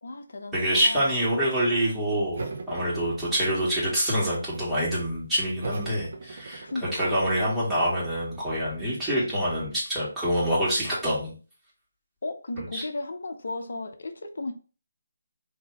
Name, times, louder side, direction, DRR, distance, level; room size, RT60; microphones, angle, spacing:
voice 1, 0.0-1.2 6.6-7.2 12.2-14.5, left 2 dB, 65° left, 0.8 m, -35 dB
voice 2, 0.5-6.6 6.9-11.3 12.6-12.8, equal, 5° right, 2.0 m, -26 dB
sound 1, 2.3-3.9 4.2-4.9 5.6-8.9, right 4 dB, 55° right, 0.8 m, -41 dB
3.9 x 2.8 x 3.5 m
figure-of-eight pair, 155°, 0 cm